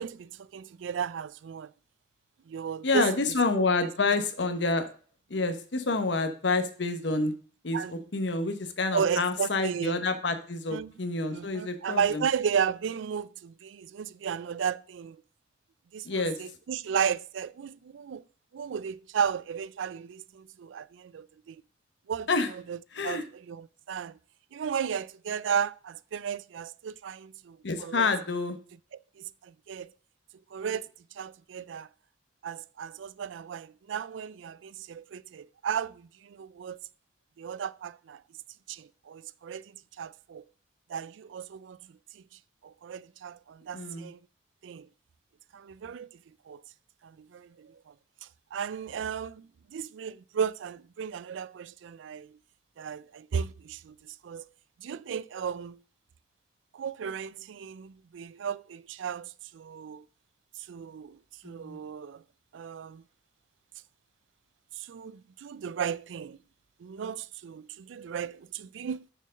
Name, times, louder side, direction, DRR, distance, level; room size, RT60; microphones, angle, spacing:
voice 1, 0.0-1.7 2.5-3.1 3.5-3.7 7.7-8.0 8.9-10.0 10.7-10.9 11.3-15.2 15.9-18.2 18.5-21.6 22.1-22.8 23.0-24.2 24.5-28.1 29.2-29.9 30.5-30.9 31.1-31.9 32.4-36.8 37.4-38.2 38.7-40.4 40.9-42.2 42.6-44.2 44.6-44.9 45.5-46.2 46.5-46.6 47.0-47.9 48.5-52.4 52.8-54.5 54.8-55.8 56.7-60.1 60.6-62.2 62.5-63.0 64.7-66.4 66.8-69.1, right 7 dB, 80° right, 0.4 m, -34 dB
voice 2, 2.8-4.9 5.3-7.3 7.6-12.2 16.0-16.4 22.3-22.5 22.9-23.2 27.6-28.6 43.7-44.1 61.4-61.8, left 3 dB, 70° left, 1.0 m, -28 dB
6.2 x 4.6 x 6.3 m
head